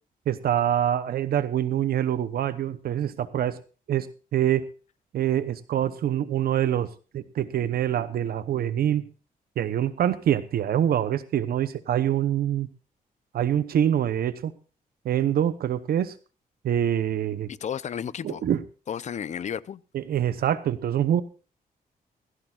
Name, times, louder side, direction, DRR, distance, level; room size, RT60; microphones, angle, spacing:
voice 1, 0.3-3.6 3.9-4.1 4.3-4.6 5.1-6.9 7.1-9.1 9.6-12.7 13.3-14.5 15.0-16.1 16.6-17.5 18.2-18.6 19.9-21.2, right 10 dB, 80° right, 0.8 m, -25 dB
voice 2, 17.5-18.4 18.9-19.8, left 8 dB, 50° left, 0.6 m, -32 dB
17.5 x 15.5 x 2.4 m
cardioid pair, 125°, 16 cm